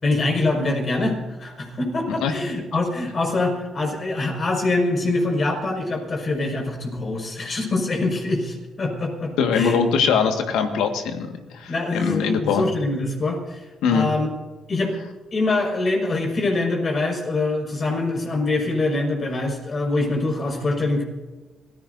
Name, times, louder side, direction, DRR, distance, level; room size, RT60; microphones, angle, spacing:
voice 1, 0.0-9.8 11.7-13.6 13.9-14.3 14.7-14.9 15.3-21.0, left 2 dB, 45° left, 2 dB, 5.5 m, -24 dB
voice 2, 2.1-2.4 9.4-12.7 13.8-14.1, left 6 dB, 85° left, 5 dB, 1.7 m, -22 dB
26.0 x 15.5 x 2.7 m, 1.2 s
supercardioid pair, 60°, 0 cm